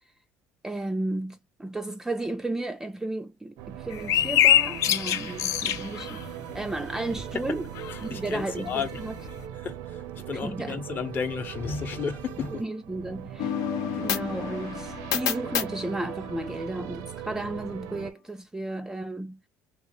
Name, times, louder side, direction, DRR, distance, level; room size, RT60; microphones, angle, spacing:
voice 1, 0.6-7.6 8.0-9.1 10.4-10.8 12.6-13.6 14.0-19.4, right 2 dB, 10° right, 0.4 m, -33 dB
sound 1, 3.6-18.1, right 11 dB, 80° right, 0.7 m, -40 dB
sound 2, 3.9-7.2 7.5-9.4, left 11 dB, 60° left, 0.5 m, -25 dB
voice 2, 7.9-9.0 9.6-12.6, left 6 dB, 35° left, 0.8 m, -33 dB
sound 3, 13.4-17.0, left 9 dB, 75° left, 0.9 m, -31 dB
3.2 x 2.9 x 3.0 m
cardioid pair, 145°, 6 cm